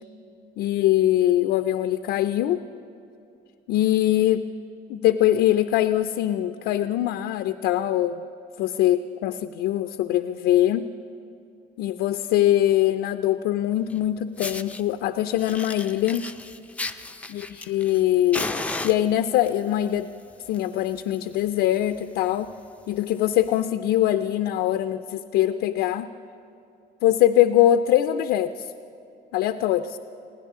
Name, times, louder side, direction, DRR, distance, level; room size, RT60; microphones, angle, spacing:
voice 1, 0.6-2.6 3.7-4.5 4.9-8.2 8.6-10.9 11.8-16.3 17.3-18.5 18.8-22.5 22.9-26.1 27.0-28.7 29.3-30.0, left 12 dB, 85° left, 9 dB, 0.5 m, -22 dB
Fire, 13.9-14.0 14.4-14.8 15.4-18.0 18.3-19.5 20.3-20.6 20.9-21.0 21.4-21.5 21.7-22.0 22.5-22.6 23.5-23.6, left 2 dB, 10° left, 0.4 m, -33 dB
21.5 x 16.5 x 3.7 m, 2.6 s
cardioid pair, 110°, 17 cm